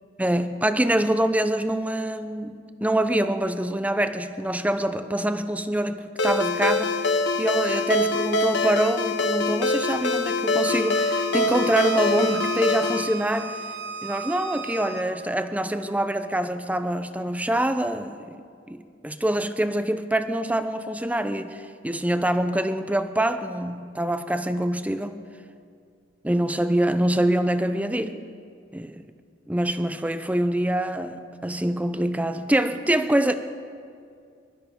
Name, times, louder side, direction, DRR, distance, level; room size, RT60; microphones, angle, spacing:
voice 1, 0.2-7.0 7.4-13.5 14.0-18.3 18.7-25.2 26.2-28.2 28.7-29.0 29.5-33.3, right 1 dB, 10° right, 10 dB, 0.6 m, -25 dB
Ringtone, 6.2-13.1, left 2 dB, 65° left, 1.0 m, -24 dB
Bowed string instrument, 10.6-15.0, right 3 dB, 60° right, 1.1 m, -35 dB
21.5 x 13.0 x 5.2 m, 2.2 s
head